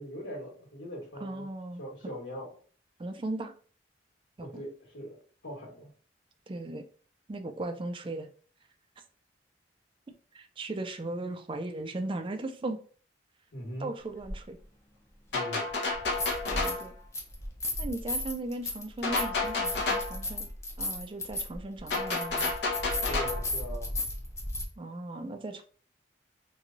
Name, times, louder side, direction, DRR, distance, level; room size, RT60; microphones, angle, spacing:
voice 1, 0.0-1.4 1.8-2.5 4.4-5.2 5.4-5.9 13.5-13.9 15.3-15.7 23.1-24.0, equal, 85° left, 1.3 m, -41 dB
voice 2, 1.2-1.8 3.0-3.5 4.4-4.6 6.5-6.9 7.3-8.3 10.3-12.8 13.8-14.6 16.5-16.9 17.8-20.5 20.8-22.5 24.8-25.6, right 2 dB, 30° right, 0.4 m, -37 dB
sound 1, 14.2-14.4 15.9-16.9 17.1-24.6, left 1 dB, 15° left, 0.6 m, -34 dB
sound 2, 15.3-16.9 19.0-20.2 21.9-23.5, left 3 dB, 65° left, 0.7 m, -30 dB
3.0 x 2.3 x 3.8 m
head